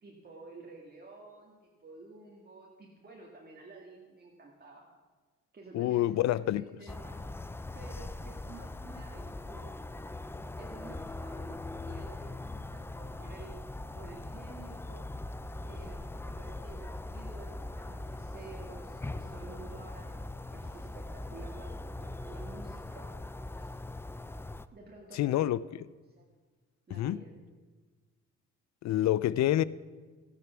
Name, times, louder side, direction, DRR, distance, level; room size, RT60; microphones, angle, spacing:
voice 1, 0.0-4.9 5.5-7.2 7.7-9.8 10.3-13.6 13.9-15.1 15.6-23.2 23.6-23.8 24.7-25.6 26.2-26.3 26.9-27.3, right 3 dB, 30° right, 1.9 m, -51 dB
voice 2, 5.7-6.6 25.1-25.6 26.9-27.2 28.8-29.6, left 13 dB, 65° left, 0.5 m, -27 dB
sound 1, 6.9-24.7, left 2 dB, 10° left, 0.3 m, -41 dB
14.0 x 9.6 x 5.9 m
cardioid pair, 90°, 30 cm